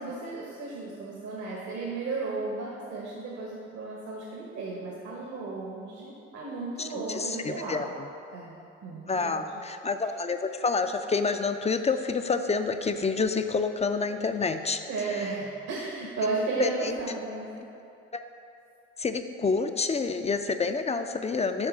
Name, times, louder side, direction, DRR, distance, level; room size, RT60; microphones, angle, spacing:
voice 1, 0.0-7.9 8.3-9.5 14.9-17.5, right 3 dB, 65° right, -3 dB, 1.2 m, -34 dB
voice 2, 6.8-8.1 9.1-15.3 16.6-17.0 19.0-21.7, left 4 dB, 20° left, 8 dB, 0.4 m, -28 dB
7.4 x 3.7 x 6.0 m, 2.6 s
hypercardioid pair, 55°, 31 cm